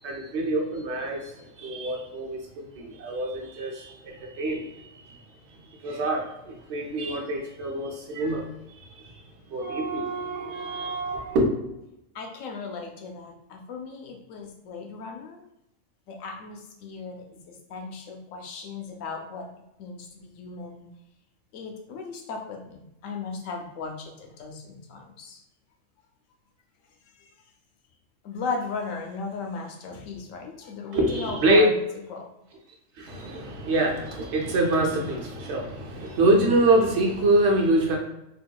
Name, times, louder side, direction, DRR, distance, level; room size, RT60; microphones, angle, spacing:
voice 1, 0.0-5.2 5.5-11.5 30.9-31.6 33.0-38.0, right 1 dB, 60° right, -1 dB, 1.0 m, -25 dB
voice 2, 12.1-15.4 16.1-19.5 19.8-20.9 21.5-25.4 27.2-27.3 28.2-31.7 32.1-32.3, left 4 dB, 80° left, 2 dB, 1.0 m, -36 dB
3.5 x 2.8 x 2.2 m, 0.87 s
omnidirectional pair, 1.4 m